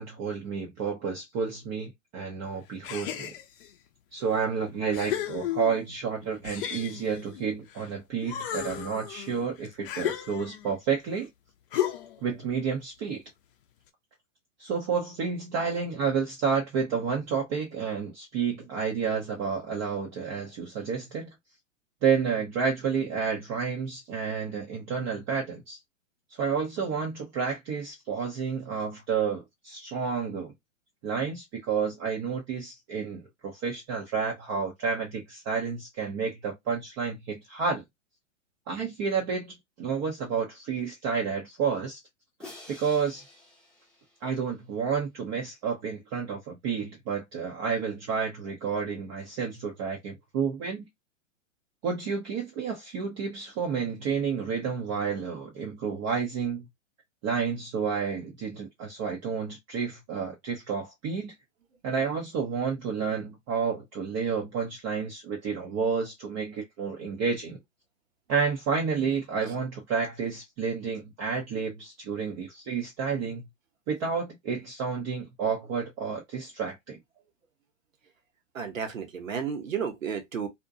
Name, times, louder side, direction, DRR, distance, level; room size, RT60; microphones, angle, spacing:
voice 1, 0.0-3.3 4.1-11.3 12.2-13.2 14.6-21.3 22.0-25.8 26.4-30.5 31.0-37.8 38.7-42.0 42.7-43.2 44.2-50.8 51.8-56.6 57.2-61.3 61.8-67.6 68.3-73.4 73.9-77.0, right 6 dB, 25° right, 0.5 m, -30 dB
sound 1, 2.8-3.7 4.3-4.4 4.9-5.9 6.4-7.9 8.2-10.7 11.7-12.3, left 11 dB, 45° left, 0.5 m, -34 dB
Crash cymbal, 42.4-44.6, left 2 dB, ahead, 0.8 m, -49 dB
voice 2, 78.5-80.5, right 7 dB, 85° right, 0.9 m, -32 dB
2.6 x 2.1 x 2.5 m
hypercardioid pair, 115°, 39 cm